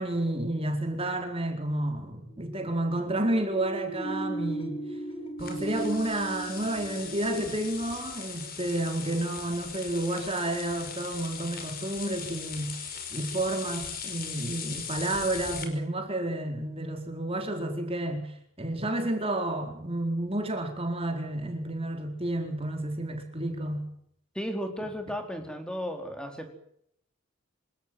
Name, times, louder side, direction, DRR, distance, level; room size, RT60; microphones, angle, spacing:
voice 1, 0.0-4.8 5.4-12.8 13.1-23.9, right 1 dB, 25° right, 4.4 m, -30 dB
sound 1, 2.3-7.9, right 1 dB, 25° left, 4.0 m, -37 dB
sound 2, 5.4-15.6, left 7 dB, 45° left, 5.7 m, -39 dB
voice 2, 24.3-26.5, equal, 5° left, 4.2 m, -34 dB
27.0 x 16.5 x 8.0 m
head